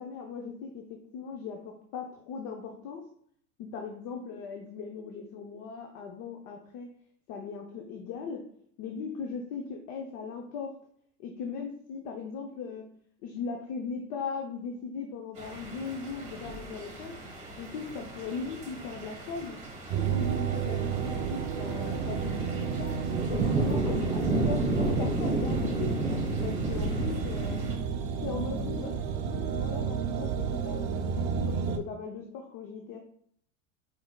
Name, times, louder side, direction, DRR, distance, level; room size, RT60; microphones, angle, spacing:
voice 1, 0.0-3.0 3.6-6.9 7.3-8.4 8.8-10.7 11.2-12.8 13.2-17.1 17.6-19.6 19.9-23.0 23.3-25.9 26.4-27.6 28.2-33.0, left 5 dB, 50° left, 2 dB, 0.7 m, -38 dB
sound 1, 15.4-27.8, right 2 dB, 15° right, 1.5 m, -32 dB
sound 2, 19.9-31.8, right 7 dB, 55° right, 0.5 m, -32 dB
4.7 x 3.5 x 2.3 m, 0.64 s
hypercardioid pair, 105°, 39 cm